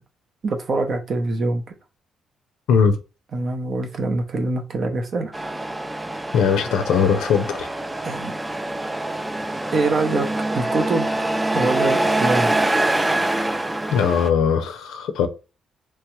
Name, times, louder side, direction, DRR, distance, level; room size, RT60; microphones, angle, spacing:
voice 1, 0.4-1.6 3.3-5.3 8.0-8.3 9.7-11.3 11.5-12.5, right 3 dB, 50° right, 0.7 m, -24 dB
voice 2, 2.7-3.0 6.3-7.7 13.9-15.3, left 6 dB, 85° left, 0.5 m, -19 dB
Truck, 5.3-14.3, right 2 dB, 10° right, 0.3 m, -24 dB
3.1 x 2.3 x 3.0 m
cardioid pair, 90°, 0 cm